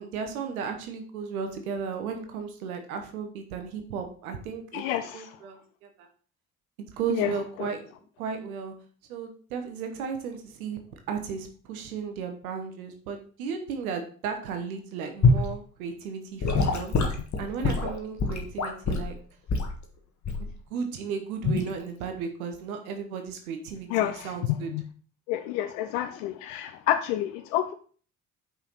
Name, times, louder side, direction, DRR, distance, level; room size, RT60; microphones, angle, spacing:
voice 1, 0.0-4.8 5.1-6.1 6.8-7.9 8.2-8.7 9.1-10.8 11.1-17.0 17.4-19.2 20.4-24.7, right 6 dB, 80° right, 5 dB, 0.9 m, -35 dB
voice 2, 4.7-5.3 7.2-7.3 7.6-7.7 23.9-24.3 24.7-24.8 25.3-27.7, left 12 dB, 75° left, 8 dB, 0.5 m, -28 dB
Gurgling / Sink (filling or washing) / Liquid, 15.2-15.5 16.4-19.1 19.5-19.7 20.2-20.5 21.4-21.7, left 3 dB, 40° left, 1.5 m, -24 dB
5.7 x 4.3 x 3.9 m, 0.43 s
figure-of-eight pair, 45°, 42 cm